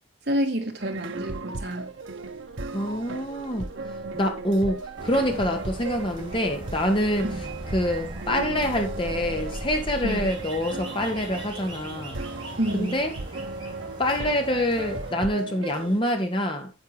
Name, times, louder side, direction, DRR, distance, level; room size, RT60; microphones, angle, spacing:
voice 1, 0.3-1.9 7.2-7.4 10.0-10.3 12.6-13.0, equal, 60° right, 2.2 m, -28 dB
sound 1, 0.8-16.0, right 3 dB, 90° right, 0.9 m, -36 dB
sound 2, 2.4-10.3, equal, 10° left, 1.4 m, -41 dB
voice 2, 2.7-3.7 4.1-7.3 7.7-12.2 12.7-13.1 14.0-16.7, equal, 30° left, 1.8 m, -26 dB
sound 3, 5.0-15.1, right 1 dB, 25° right, 6.0 m, -40 dB
9.3 x 8.1 x 3.3 m
head